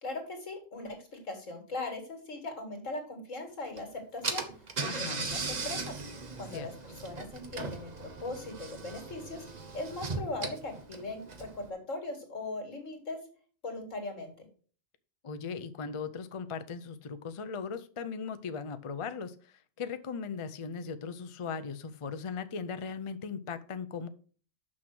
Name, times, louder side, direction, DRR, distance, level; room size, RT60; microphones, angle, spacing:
voice 1, 0.0-4.4 4.8-6.0 6.4-13.2 13.6-14.3, left 2 dB, 75° left, 4 dB, 2.5 m, -39 dB
Car / Engine, 3.8-3.9 4.2-11.7, right 4 dB, 35° right, 1.0 m, -38 dB
voice 2, 4.8-5.2 6.5-6.7 15.2-24.1, left 5 dB, 40° left, 11 dB, 0.4 m, -38 dB
6.3 x 6.0 x 6.0 m, 0.42 s
omnidirectional pair, 1.3 m